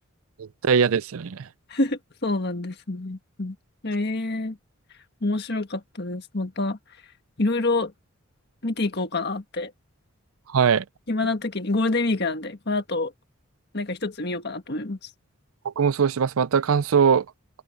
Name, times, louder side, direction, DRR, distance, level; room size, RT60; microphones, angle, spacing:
voice 1, 0.4-1.5 10.5-10.8 15.6-17.3, right 6 dB, 80° right, 0.5 m, -21 dB
voice 2, 1.7-3.5 3.8-4.6 5.2-6.8 7.4-7.9 8.6-9.7 11.1-13.1 13.7-15.1, left 2 dB, 50° left, 1.7 m, -27 dB
open air
head